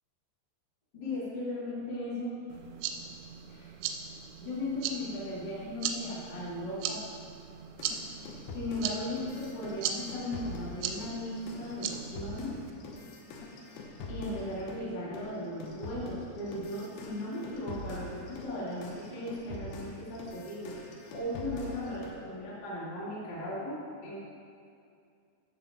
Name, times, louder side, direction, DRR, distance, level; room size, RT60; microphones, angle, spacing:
voice 1, 0.9-2.4 3.5-3.7 4.4-7.0 8.3-12.6 14.1-24.2, left 1 dB, 35° left, -8 dB, 1.6 m, -37 dB
sound 1, 2.5-12.7, right 8 dB, 90° right, 3.1 m, -39 dB
sound 2, 7.8-14.9 15.1-22.2, left 2 dB, 75° left, 2.3 m, -44 dB
13.5 x 6.2 x 3.6 m, 2.5 s
omnidirectional pair, 5.4 m